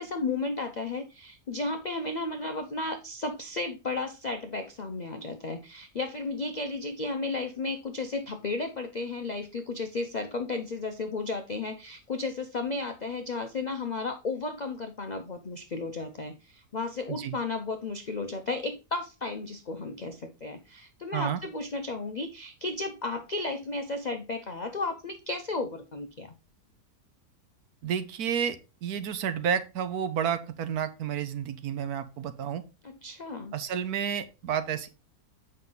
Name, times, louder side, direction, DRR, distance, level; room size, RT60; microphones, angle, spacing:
voice 1, 0.0-26.3 32.8-33.5, left 3 dB, 55° left, 6 dB, 0.4 m, -34 dB
voice 2, 27.8-32.6 33.5-34.9, right 8 dB, 75° right, 11 dB, 1.3 m, -31 dB
7.6 x 5.6 x 3.8 m, 0.30 s
omnidirectional pair, 1.7 m